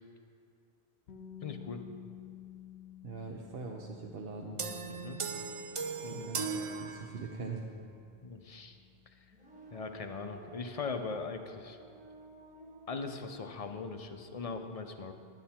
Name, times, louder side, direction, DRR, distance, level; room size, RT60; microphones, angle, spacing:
sound 1, 1.1-12.9, left 10 dB, 80° left, 1.0 m, -54 dB
voice 1, 1.4-1.8 4.9-5.2 6.0-6.3 8.2-8.8 9.7-11.8 12.9-15.1, left 4 dB, 40° left, 7 dB, 0.6 m, -40 dB
voice 2, 3.0-4.6 6.1-7.7, right 4 dB, 65° right, 0 dB, 1.0 m, -42 dB
sound 2, 4.6-7.6, right 5 dB, 45° right, 0.4 m, -38 dB
sound 3, 9.3-13.7, right 2 dB, 5° right, 1.2 m, -54 dB
10.5 x 10.5 x 4.3 m, 2.4 s
omnidirectional pair, 1.1 m